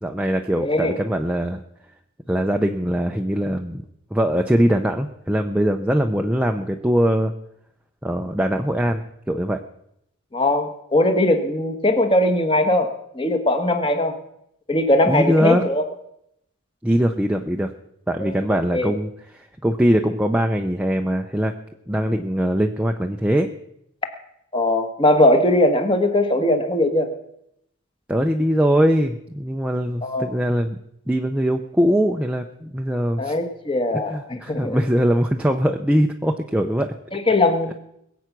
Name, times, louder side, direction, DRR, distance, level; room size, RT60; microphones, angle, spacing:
voice 1, 0.0-1.6 2.3-3.8 4.1-7.3 8.0-9.6 15.1-15.6 16.8-17.7 18.1-21.5 21.9-23.5 28.1-30.8 31.1-33.3 34.1-36.9 37.7-37.8, equal, 5° right, 3 dB, 0.6 m, -21 dB
voice 2, 0.6-1.0 10.3-14.1 14.7-15.8 18.2-18.3 18.7-18.9 24.5-27.1 30.0-30.4 33.2-34.8 37.1-37.7, left 1 dB, 25° left, 7 dB, 1.4 m, -20 dB
21.5 x 8.1 x 6.0 m, 0.78 s
head